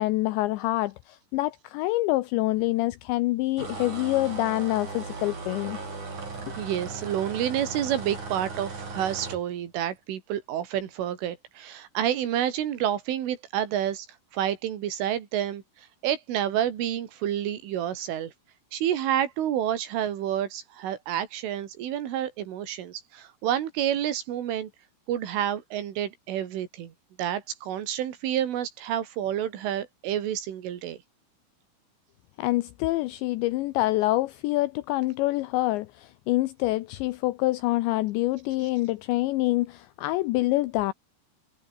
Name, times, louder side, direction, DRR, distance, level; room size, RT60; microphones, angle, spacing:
voice 1, 0.0-5.8 32.4-40.9, left 18 dB, 80° left, 2.9 m, -26 dB
sound 1, 3.6-9.4, right 3 dB, 40° right, 8.1 m, -37 dB
voice 2, 6.6-14.1 14.3-18.3 18.7-24.7 25.1-26.9 27.2-31.0, right 11 dB, 85° right, 5.0 m, -29 dB
omnidirectional pair, 5.5 m